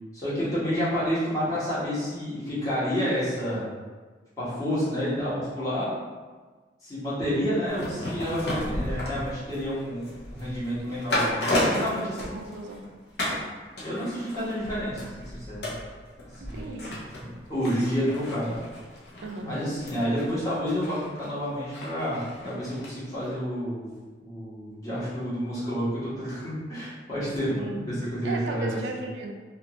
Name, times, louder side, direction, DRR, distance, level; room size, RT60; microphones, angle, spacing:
voice 1, 0.1-3.7 4.4-5.9 6.8-12.3 13.8-15.7 16.5-16.7 17.2-18.6 19.4-23.9 24.2-28.8, equal, 20° left, -11 dB, 1.0 m, -29 dB
sound 1, 7.7-12.9 13.2-13.5 13.8-22.9 23.2-23.3, left 1 dB, 65° left, 0.7 m, -33 dB
voice 2, 12.0-12.8 16.4-16.9 19.2-19.5 27.5-27.8 28.2-29.3, right 2 dB, 85° right, 2 dB, 0.4 m, -36 dB
2.5 x 2.3 x 2.8 m, 1.4 s
head